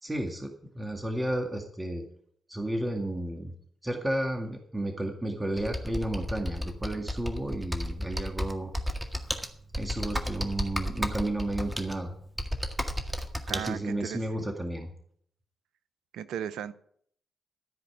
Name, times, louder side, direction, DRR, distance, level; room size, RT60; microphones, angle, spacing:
voice 1, 0.0-2.0 2.5-3.5 3.8-8.7 9.7-12.1 13.5-14.9, right 1 dB, 20° right, 2.0 m, -32 dB
Computer keyboard, 5.6-13.7, equal, 5° right, 1.8 m, -33 dB
voice 2, 13.5-14.2 16.1-16.7, right 9 dB, 80° right, 0.6 m, -36 dB
13.5 x 5.1 x 8.7 m
hypercardioid pair, 40°, 0 cm